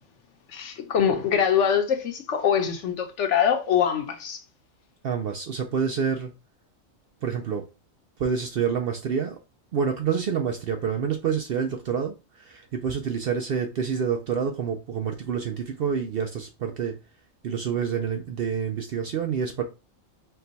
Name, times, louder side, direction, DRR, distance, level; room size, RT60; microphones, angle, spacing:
voice 1, 0.5-4.4, left 8 dB, 65° left, 1.0 m, -23 dB
voice 2, 5.0-6.3 7.2-7.7 8.2-9.4 9.7-17.0 17.4-19.6, right 7 dB, 60° right, 0.6 m, -27 dB
4.4 x 2.2 x 3.9 m
omnidirectional pair, 1.4 m